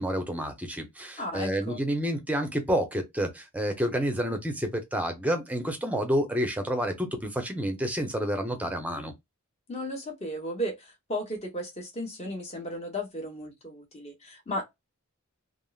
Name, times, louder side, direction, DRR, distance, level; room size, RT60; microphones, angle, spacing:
voice 1, 0.0-9.1, equal, 5° right, 0.7 m, -29 dB
voice 2, 1.2-1.8 9.7-14.8, equal, 30° left, 1.2 m, -35 dB
3.5 x 2.1 x 2.4 m
head